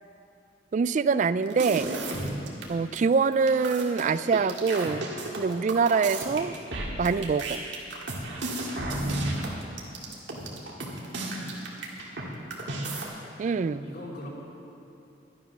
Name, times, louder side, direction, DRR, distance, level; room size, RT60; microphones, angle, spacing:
voice 1, 0.7-1.9 2.7-5.1 5.4-6.5 7.0-7.6 13.4-13.9, right 5 dB, 40° right, 15 dB, 0.3 m, -24 dB
sound 1, 1.5-2.7 3.0-3.1 3.3-12.2 12.5-13.1, right 2 dB, 80° right, 1.9 m, -33 dB
voice 2, 11.3-12.9 13.8-14.3, equal, 55° left, -3 dB, 2.5 m, -45 dB
12.0 x 11.0 x 5.9 m, 2.8 s
head